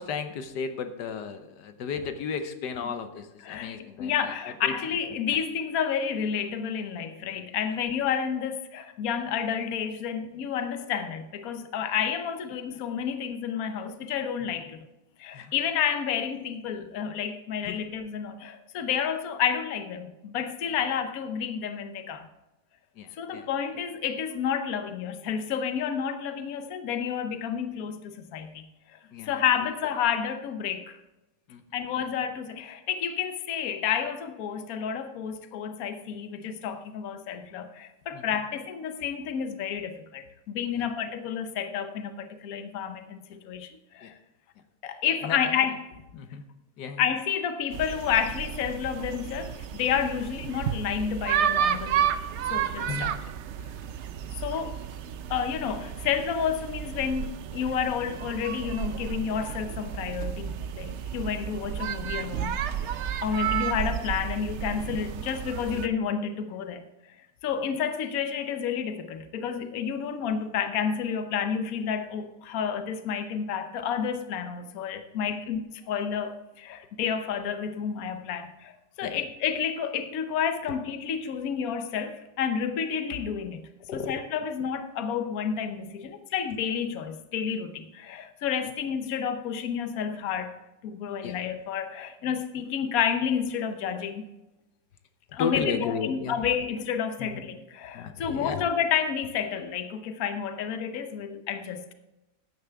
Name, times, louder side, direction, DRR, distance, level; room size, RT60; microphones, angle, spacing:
voice 1, 0.0-4.7 14.4-14.6 15.3-15.5 17.6-17.8 20.7-20.8 22.9-23.5 29.1-29.4 31.5-31.6 38.1-38.2 40.7-40.9 44.0-44.1 45.2-45.7 46.1-46.4 46.8-47.0 52.9-53.1 53.6-53.7 54.2-54.3 63.3-63.4 75.2-75.3 79.0-79.2 80.6-80.8 83.9-84.1 88.6-88.7 91.2-91.4 95.4-96.4 97.2-97.4 97.9-98.7, left 6 dB, 90° left, 8 dB, 1.5 m, -34 dB
voice 2, 3.4-14.9 15.2-22.3 23.1-29.0 29.2-31.0 31.7-43.7 43.9-44.1 44.8-45.8 47.0-52.1 52.5-53.1 54.3-54.8 55.3-66.8 67.4-83.6 83.9-90.6 90.8-94.2 95.3-101.9, left 7 dB, 65° left, 8 dB, 1.3 m, -30 dB
sound 1, 47.7-65.9, right 9 dB, 65° right, 0.7 m, -32 dB
14.0 x 9.8 x 3.5 m, 0.97 s
omnidirectional pair, 1.7 m